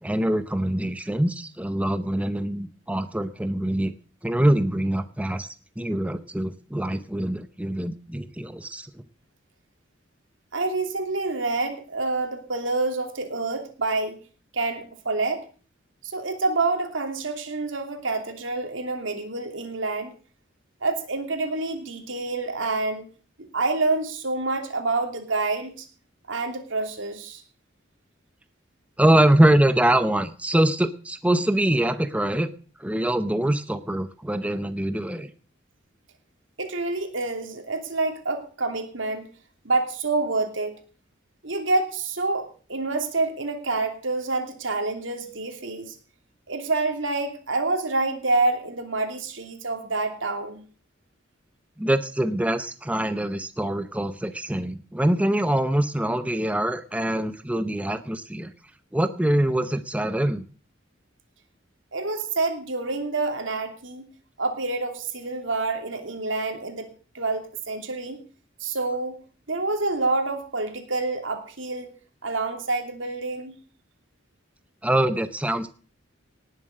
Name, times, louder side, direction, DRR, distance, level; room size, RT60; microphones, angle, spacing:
voice 1, 0.0-3.9 4.2-5.5 5.8-8.9 29.0-32.5 32.8-35.3 51.8-58.5 58.9-60.4 74.8-75.7, right 1 dB, 5° right, 10 dB, 0.7 m, -24 dB
voice 2, 10.5-14.2 14.5-15.4 16.0-20.1 20.8-23.0 23.5-25.9 26.3-27.4 36.6-39.3 39.6-40.8 41.4-46.0 46.5-50.6 61.9-64.0 64.4-68.2 68.6-69.2 69.5-71.9 72.2-73.5, right 3 dB, 80° right, 5 dB, 2.9 m, -27 dB
19.0 x 7.3 x 6.5 m, 0.41 s
head